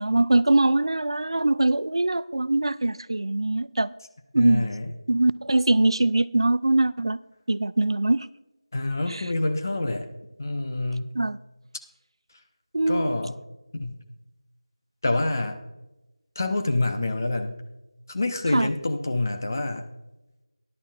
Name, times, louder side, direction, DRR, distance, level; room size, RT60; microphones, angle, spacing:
voice 1, 0.0-3.9 4.3-4.7 5.1-7.2 7.5-8.3 9.1-9.3 11.1-11.4 12.7-13.2 18.5-18.7, right 2 dB, 55° right, 18 dB, 0.3 m, -22 dB
voice 2, 4.3-4.9 8.7-10.1 10.4-11.1 12.9-13.4 13.7-14.0 15.0-15.6 16.4-17.5 18.1-19.8, left 2 dB, 35° left, 6 dB, 0.8 m, -27 dB
13.5 x 11.0 x 2.4 m, 1.0 s
figure-of-eight pair, 170°, 3 cm